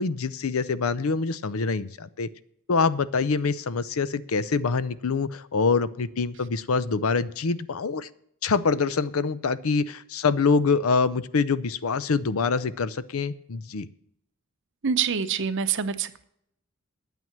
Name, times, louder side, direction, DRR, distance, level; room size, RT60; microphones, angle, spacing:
voice 1, 0.0-2.3 2.7-8.1 8.4-13.9, left 4 dB, 80° left, 16 dB, 0.6 m, -25 dB
voice 2, 14.8-16.2, right 6 dB, 60° right, 10 dB, 0.7 m, -26 dB
9.3 x 9.2 x 7.3 m, 0.72 s
head